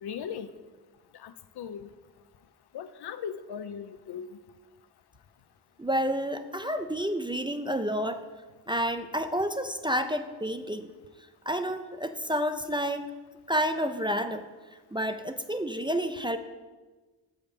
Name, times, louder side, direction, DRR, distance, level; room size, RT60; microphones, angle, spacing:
voice 1, 0.0-0.5 1.2-1.9 2.7-4.3, left 8 dB, 80° left, 11 dB, 0.6 m, -38 dB
voice 2, 5.8-8.2 8.7-10.9 11.5-13.1 13.5-14.5 14.9-16.4, equal, 15° right, 7 dB, 0.3 m, -29 dB
7.5 x 5.0 x 5.1 m, 1.3 s
wide cardioid pair, 105°, 38 cm